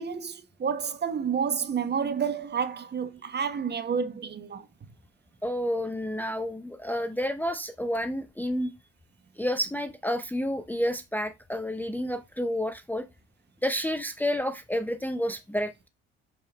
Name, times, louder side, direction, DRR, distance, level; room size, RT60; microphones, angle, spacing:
voice 1, 0.0-4.7, right 6 dB, 30° right, 1.1 m, -30 dB
voice 2, 5.4-8.7 9.4-13.1 13.6-15.9, equal, 5° left, 0.7 m, -30 dB
6.6 x 5.5 x 3.3 m
hypercardioid pair, 55°, 32 cm